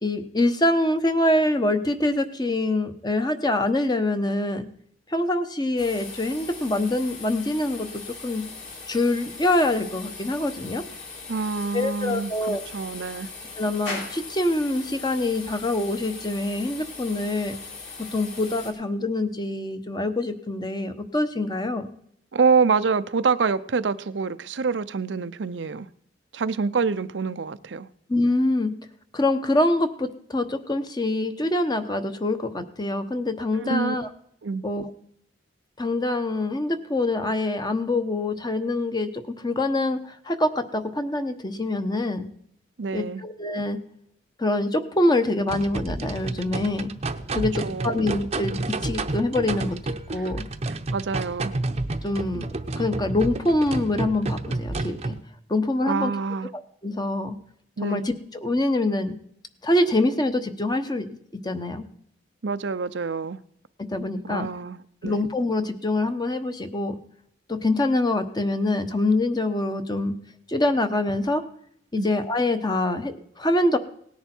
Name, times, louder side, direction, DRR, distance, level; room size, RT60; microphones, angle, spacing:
voice 1, 0.0-4.7 5.1-7.9 8.2-8.4 8.9-10.8 11.7-12.6 13.6-17.6 18.1-21.9 28.1-28.7 29.1-34.1 34.6-34.9 35.8-42.3 42.9-43.8 44.4-46.9 47.3-50.4 52.0-55.1 55.5-56.1 56.8-57.3 57.8-59.2 59.6-61.1 61.4-61.9 63.9-64.5 65.0-67.0 67.5-70.1 70.5-71.4 71.9-73.8, left 2 dB, 25° left, 8 dB, 1.0 m, -25 dB
sound 1, 5.8-18.7, left 4 dB, 45° left, 3.9 m, -40 dB
voice 2, 11.3-13.3 22.3-25.9 26.3-27.9 33.6-34.0 34.4-34.6 42.8-43.2 47.3-48.0 50.1-50.2 50.9-51.5 55.9-56.5 57.8-58.0 62.4-63.4 64.2-65.2 72.0-72.1, right 5 dB, 90° right, 12 dB, 0.6 m, -26 dB
sound 2, 13.8-31.3, left 2 dB, 85° left, 4.1 m, -48 dB
sound 3, 45.5-55.2, right 2 dB, 35° right, 0.7 m, -30 dB
18.0 x 10.5 x 4.5 m, 0.69 s
head